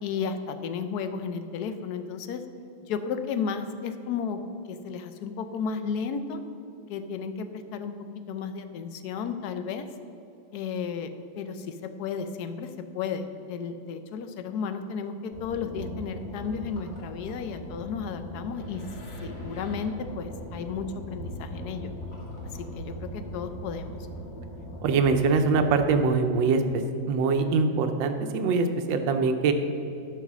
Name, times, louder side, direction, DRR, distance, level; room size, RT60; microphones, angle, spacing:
voice 1, 0.0-2.4 2.9-4.4 4.7-6.4 6.9-7.5 7.7-7.9 8.3-9.9 10.5-11.1 11.4-18.8 19.2-21.9 22.6-24.0, left 6 dB, 70° left, 9 dB, 1.0 m, -33 dB
sound 1, 15.3-25.9, equal, 40° left, 2.1 m, -39 dB
voice 2, 24.8-26.6 27.1-29.5, right 4 dB, 85° right, 7 dB, 1.4 m, -23 dB
11.0 x 4.8 x 6.0 m, 2.8 s
omnidirectional pair, 2.0 m